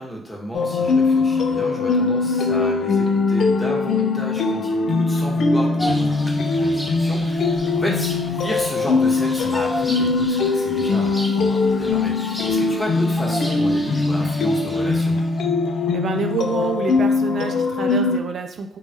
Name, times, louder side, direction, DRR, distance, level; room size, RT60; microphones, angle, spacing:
voice 1, 0.0-15.2, equal, 20° left, -3 dB, 1.1 m, -32 dB
sound 1, 0.5-18.2, left 3 dB, 70° left, 0.3 m, -21 dB
Bird vocalization bird call bird song, 5.8-15.4, equal, 5° left, 0.6 m, -35 dB
voice 2, 15.7-18.8, right 5 dB, 70° right, 5 dB, 0.3 m, -27 dB
3.1 x 2.2 x 2.7 m, 0.64 s
supercardioid pair, 45°, 0 cm